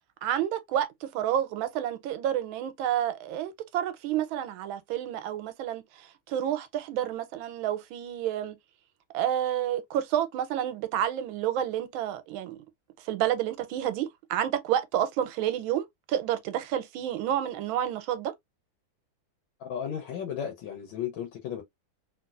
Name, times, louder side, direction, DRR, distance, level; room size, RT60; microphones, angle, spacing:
voice 1, 0.2-8.5 9.1-12.6 13.0-18.3, right 11 dB, 90° right, 1.4 m, -29 dB
voice 2, 19.6-21.6, left 9 dB, 80° left, 1.5 m, -34 dB
3.1 x 2.8 x 2.3 m
omnidirectional pair, 2.1 m